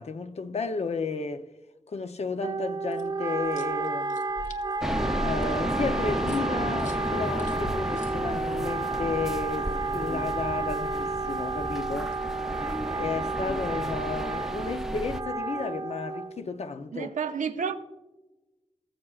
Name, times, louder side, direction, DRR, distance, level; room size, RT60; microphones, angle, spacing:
voice 1, 0.0-1.5 1.9-4.2 5.2-12.2 13.0-17.1, left 4 dB, 60° left, 0.7 m, -33 dB
Wind instrument woodwind instrument, 2.4-16.4, right 3 dB, 40° right, 0.9 m, -31 dB
sound 1, 2.9-8.9 11.4-12.9, left 2 dB, 75° left, 1.0 m, -46 dB
sound 2, 4.8-15.2, equal, 5° right, 0.5 m, -33 dB
voice 2, 16.9-17.7, right 6 dB, 90° right, 0.7 m, -30 dB
18.5 x 7.4 x 2.4 m
cardioid pair, 60°, 13 cm